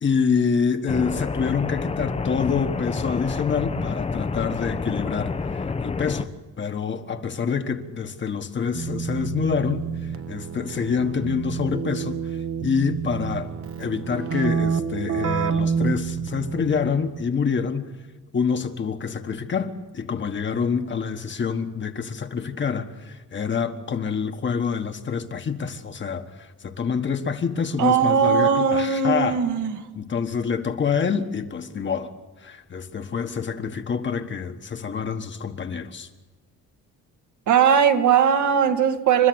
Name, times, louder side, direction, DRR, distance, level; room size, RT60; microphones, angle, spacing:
voice 1, 0.0-6.3 6.6-9.8 10.3-12.2 12.6-13.5 13.8-17.9 18.3-29.4 29.9-32.1 32.4-36.1, left 6 dB, 40° left, 1.4 m, -26 dB
sound 1, 0.9-6.2, left 4 dB, 20° left, 0.7 m, -28 dB
Keyboard (musical), 8.8-17.2, right 6 dB, 45° right, 1.1 m, -28 dB
voice 2, 27.8-29.7 37.5-39.3, right 7 dB, 70° right, 1.7 m, -19 dB
29.0 x 13.0 x 7.9 m
cardioid pair, 110°, 30 cm